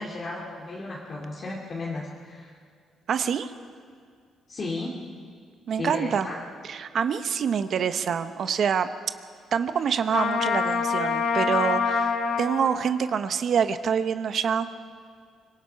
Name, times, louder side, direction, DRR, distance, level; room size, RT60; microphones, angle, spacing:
voice 1, 0.0-2.5 4.5-5.0 5.8-6.4, left 2 dB, 40° left, -3 dB, 2.6 m, -34 dB
voice 2, 3.1-3.5 5.7-6.3 6.6-8.9 9.5-14.7, right 7 dB, 60° right, 10 dB, 1.0 m, -26 dB
Trumpet, 10.1-12.6, left 5 dB, 75° left, 1.8 m, -25 dB
25.5 x 18.5 x 5.8 m, 2.2 s
cardioid pair, 90°, 0 cm